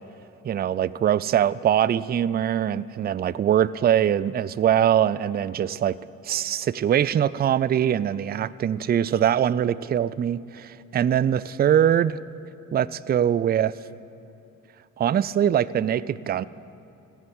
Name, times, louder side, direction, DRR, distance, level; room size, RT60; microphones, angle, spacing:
voice 1, 0.4-6.0 6.2-12.2 12.7-13.7 15.0-16.4, right 10 dB, 25° right, 19 dB, 0.3 m, -22 dB
15.0 x 7.9 x 8.7 m, 2.6 s
hypercardioid pair, 45°, 42 cm